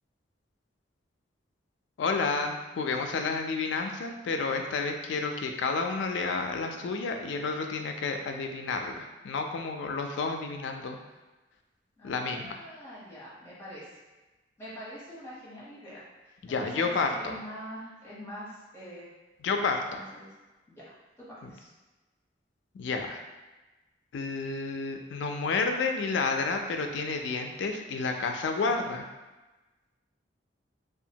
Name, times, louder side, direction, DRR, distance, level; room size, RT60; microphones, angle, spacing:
voice 1, 2.0-11.0 12.0-12.6 16.4-17.3 19.4-20.0 22.7-23.2 24.1-29.0, left 4 dB, 75° left, 5 dB, 0.3 m, -30 dB
voice 2, 12.0-14.0 14.6-19.1 19.9-20.3 20.7-20.8 21.2-21.7 24.5-24.6, equal, 15° left, -9 dB, 0.9 m, -45 dB
2.8 x 2.3 x 2.7 m, 1.1 s
head